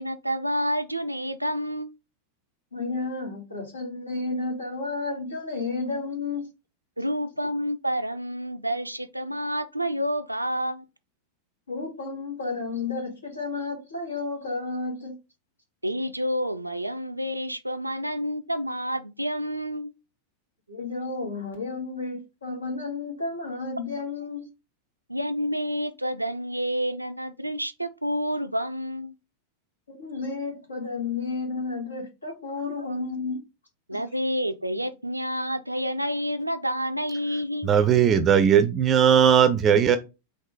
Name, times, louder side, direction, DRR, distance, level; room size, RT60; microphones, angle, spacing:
voice 1, 0.0-1.9 7.0-10.8 15.8-19.9 24.0-24.1 25.1-29.1 32.8-32.9 33.9-37.7, equal, 85° right, 0.4 m, -29 dB
voice 2, 2.7-6.4 11.7-15.2 20.7-24.5 29.9-33.4 33.9-34.0, left 3 dB, 75° left, 1.4 m, -32 dB
voice 3, 37.6-40.0, right 8 dB, 25° right, 0.4 m, -18 dB
3.7 x 2.6 x 4.5 m
figure-of-eight pair, 90°, 0 cm